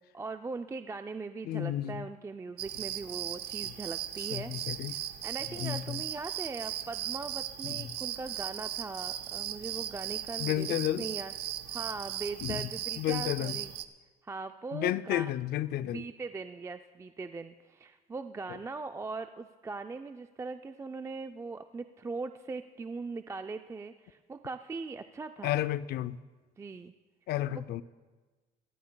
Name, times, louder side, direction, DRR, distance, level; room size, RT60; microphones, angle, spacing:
voice 1, 0.1-4.5 4.9-11.3 11.7-13.7 14.2-15.3 15.8-25.6 26.6-26.9 27.5-27.6, right 4 dB, 15° right, 0.4 m, -40 dB
voice 2, 1.5-2.0 4.3-5.0 5.6-6.0 7.6-7.7 10.4-11.1 12.4-12.6 13.0-13.6 14.7-16.0 25.4-26.2 27.3-27.8, left 13 dB, 65° left, 0.5 m, -32 dB
sound 1, 2.6-13.8, right 11 dB, 80° right, 0.7 m, -37 dB
27.0 x 13.5 x 2.2 m
cardioid pair, 110°, 17 cm